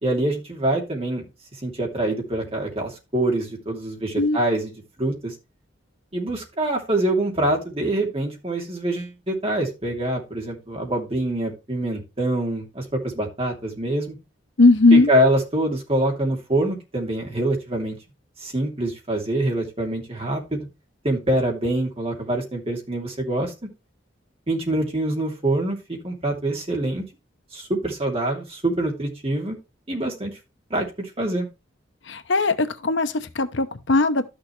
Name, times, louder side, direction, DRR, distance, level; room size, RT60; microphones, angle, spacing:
voice 1, 0.0-1.2 1.6-4.7 5.0-5.3 6.1-14.2 14.9-18.0 18.4-20.7 21.0-23.5 24.5-27.0 27.5-29.6 29.9-30.3 30.7-31.5, right 1 dB, 30° right, 2.7 m, -25 dB
voice 2, 14.6-15.1 32.1-34.2, left 3 dB, 70° left, 0.9 m, -18 dB
12.5 x 6.5 x 3.3 m
head